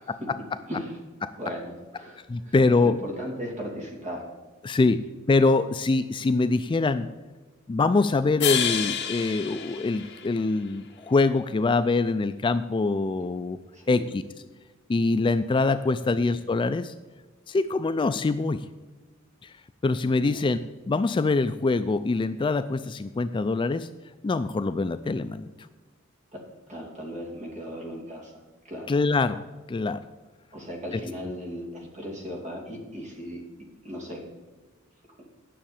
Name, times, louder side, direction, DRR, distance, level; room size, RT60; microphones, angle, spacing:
voice 1, 0.1-0.4 1.2-1.3 2.3-3.0 4.6-5.0 5.3-7.1 7.7-13.6 13.9-14.2 14.9-16.9 17.5-18.7 19.4-19.5 19.8-20.6 20.9-23.9 24.2-25.5 28.9-29.4 29.7-30.0, left 3 dB, 25° left, 11 dB, 0.3 m, -24 dB
voice 2, 0.7-1.0 1.4-2.5 2.8-4.3 13.7-14.1 20.2-20.4 26.3-28.3 28.6-28.9 30.5-33.4 33.8-34.2 35.2-35.3, equal, 35° right, 0 dB, 2.7 m, -37 dB
sound 1, 8.4-10.7, left 8 dB, 55° left, 1.4 m, -29 dB
10.0 x 6.6 x 7.1 m, 1.3 s
head